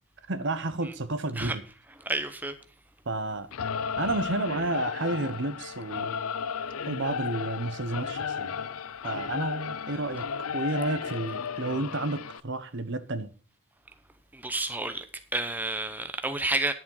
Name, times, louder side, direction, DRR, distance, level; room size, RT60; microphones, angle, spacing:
voice 1, 0.3-1.6 3.1-3.5 4.0-6.1 6.9-8.5 9.0-13.3, right 2 dB, 55° right, 1.0 m, -31 dB
voice 2, 2.0-2.5 14.3-15.0 15.3-16.7, right 2 dB, 10° right, 0.8 m, -30 dB
Singing / Musical instrument, 3.5-12.4, left 6 dB, 85° left, 0.6 m, -34 dB
10.5 x 7.4 x 5.5 m
head